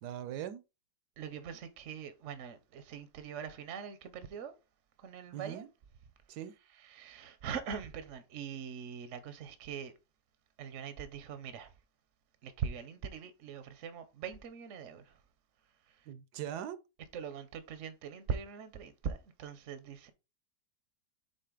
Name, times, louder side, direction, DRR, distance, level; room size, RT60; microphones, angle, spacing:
voice 1, 0.0-0.6 5.3-5.7 6.3-6.5 16.1-16.8, right 10 dB, 75° right, 1.2 m, -41 dB
voice 2, 1.2-4.5 5.0-5.7 6.8-9.9 10.6-11.7 12.4-15.2 15.9-16.1 17.1-20.1, right 7 dB, 55° right, 0.9 m, -42 dB
6.6 x 3.9 x 3.8 m
omnidirectional pair, 1.8 m